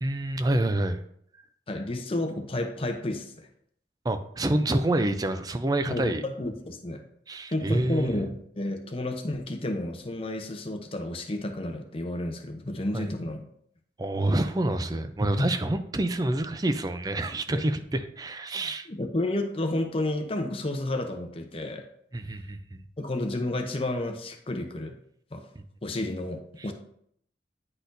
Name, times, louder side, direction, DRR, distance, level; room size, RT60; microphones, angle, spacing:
voice 1, 0.0-1.0 4.0-6.2 7.3-8.3 12.9-13.1 14.0-18.9 22.1-22.8, right 1 dB, 20° right, 9 dB, 0.4 m, -27 dB
voice 2, 1.7-3.5 5.8-7.0 7.5-13.5 15.4-15.5 17.5-17.6 18.9-21.9 23.0-25.0 25.3-25.5 25.8-26.7, left 1 dB, 30° left, 5 dB, 0.7 m, -31 dB
9.8 x 4.1 x 2.6 m, 0.66 s
head